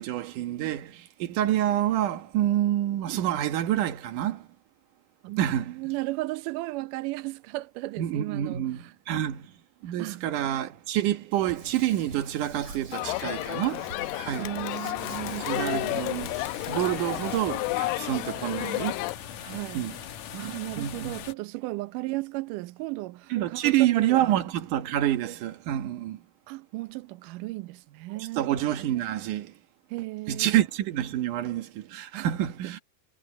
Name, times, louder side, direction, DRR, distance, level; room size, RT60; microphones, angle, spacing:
voice 1, 0.0-4.5 5.4-5.8 8.0-9.5 9.8-13.9 14.1-14.5 15.4-16.4 16.7-19.1 19.7-20.0 20.8-21.2 23.3-26.2 28.4-29.5 30.3-32.8, right 12 dB, 65° right, 2.5 m, -27 dB
voice 2, 5.2-8.9 10.0-10.2 14.4-16.0 19.4-19.9 20.3-24.4 26.5-28.5 29.9-30.6 32.1-32.3 32.6-32.7, right 20 dB, 90° right, 1.8 m, -35 dB
Hands, 11.3-17.4, right 3 dB, 45° right, 9.2 m, -46 dB
Crowd, 12.9-19.2, left 20 dB, 85° left, 2.7 m, -32 dB
sound 1, 14.9-21.3, left 9 dB, 65° left, 2.0 m, -41 dB
omnidirectional pair, 4.6 m